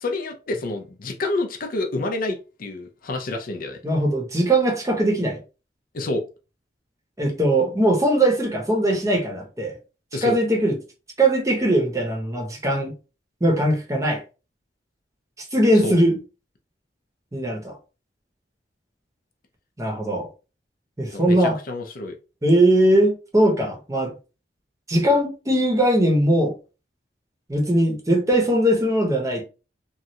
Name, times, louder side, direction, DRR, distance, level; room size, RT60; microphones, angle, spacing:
voice 1, 0.0-3.8 5.9-6.2 10.1-10.4 15.8-16.0 21.1-22.1, left 2 dB, 50° left, 0.5 m, -28 dB
voice 2, 3.8-5.4 7.2-9.7 10.2-10.8 11.2-12.9 13.4-14.2 15.5-16.2 17.3-17.8 19.8-20.3 21.0-21.6 22.4-24.1 24.9-26.5 27.5-29.4, right 1 dB, 20° right, 0.8 m, -20 dB
3.1 x 2.4 x 2.7 m
head